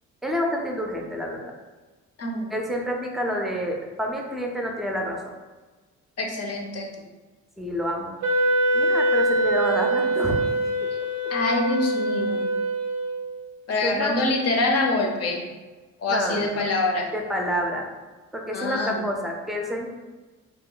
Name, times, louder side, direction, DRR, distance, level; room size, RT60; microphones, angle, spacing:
voice 1, 0.2-1.5 2.5-5.3 7.6-8.2 8.7-10.9 13.8-14.1 16.1-16.7 17.1-17.9 18.3-19.9, equal, ahead, 0 dB, 0.5 m, -28 dB
voice 2, 6.2-6.9 11.3-12.5 13.7-15.4 16.0-17.1 18.5-19.0, left 2 dB, 55° left, 1 dB, 0.7 m, -25 dB
Wind instrument woodwind instrument, 8.2-13.4, right 1 dB, 85° right, 0.5 m, -24 dB
3.0 x 2.1 x 3.8 m, 1.3 s
cardioid pair, 90°, 30 cm